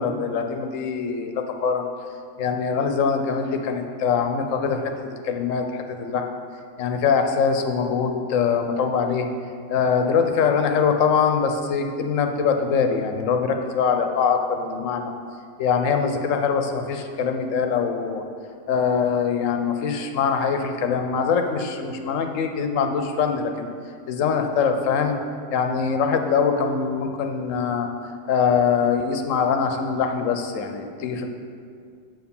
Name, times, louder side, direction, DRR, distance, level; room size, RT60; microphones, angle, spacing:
voice 1, 0.0-1.9 2.4-6.3 6.8-9.3 9.7-15.1 15.6-18.2 18.7-23.7 24.1-25.2 25.5-27.9 28.3-31.3, left 6 dB, 85° left, 5 dB, 1.0 m, -23 dB
7.7 x 4.7 x 5.3 m, 2.2 s
omnidirectional pair, 1.3 m